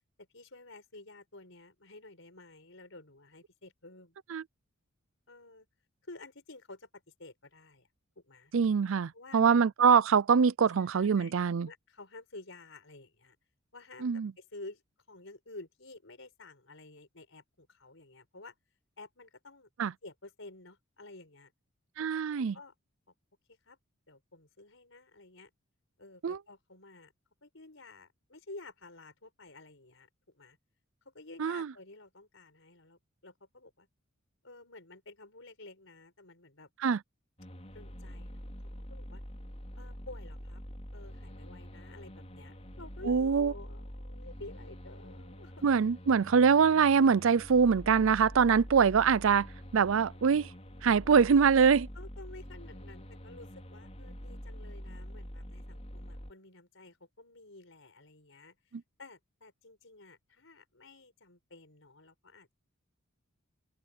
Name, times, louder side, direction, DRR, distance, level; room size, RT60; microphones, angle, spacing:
voice 1, 0.2-4.2 5.3-5.7 6.0-7.9 8.2-8.5 9.1-9.4 10.8-11.3 11.6-13.4 13.7-14.8 15.1-18.6 19.0-19.7 20.0-21.5 22.0-22.1 22.4-22.7 23.5-23.8 24.1-25.5 26.0-27.1 27.4-30.6 31.0-33.9 34.4-36.7 37.7-38.4 38.9-39.2 39.8-40.6 40.9-45.6 51.9-58.6 59.0-62.5, left 2 dB, 60° left, 5.7 m, -51 dB
voice 2, 8.5-11.7 14.0-14.3 19.8-19.9 22.0-22.6 26.2-26.4 31.4-31.7 36.8-37.0 43.1-43.5 45.6-49.5 49.7-50.5 50.8-51.9, right 6 dB, 65° right, 0.4 m, -24 dB
sound 1, 37.4-56.3, equal, 30° left, 5.1 m, -45 dB
open air
head